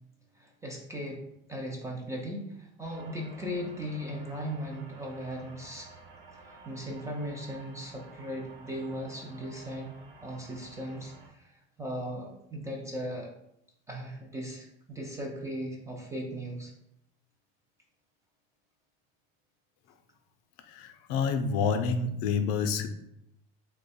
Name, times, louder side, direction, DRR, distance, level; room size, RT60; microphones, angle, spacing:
voice 1, 0.4-1.2 1.5-5.9 6.4-9.9 10.2-13.3 13.9-16.7, equal, 10° right, 0 dB, 0.3 m, -38 dB
sound 1, 2.8-11.3, right 3 dB, 60° right, 0.8 m, -52 dB
voice 2, 20.6-22.9, left 5 dB, 65° left, 8 dB, 0.5 m, -28 dB
3.0 x 2.2 x 4.0 m, 0.77 s
cardioid pair, 145°, 30 cm